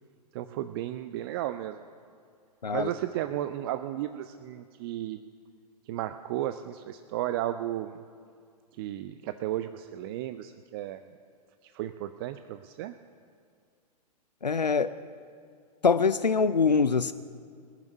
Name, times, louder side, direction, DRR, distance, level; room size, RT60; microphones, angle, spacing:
voice 1, 0.3-1.8 2.7-5.2 5.9-8.0 8.8-11.0 11.6-12.9, right 13 dB, 35° right, 11 dB, 0.5 m, -34 dB
voice 2, 14.4-14.9 15.8-17.1, left 5 dB, 85° left, 14 dB, 0.5 m, -24 dB
19.5 x 7.1 x 9.9 m, 2.2 s
figure-of-eight pair, 105°, 21 cm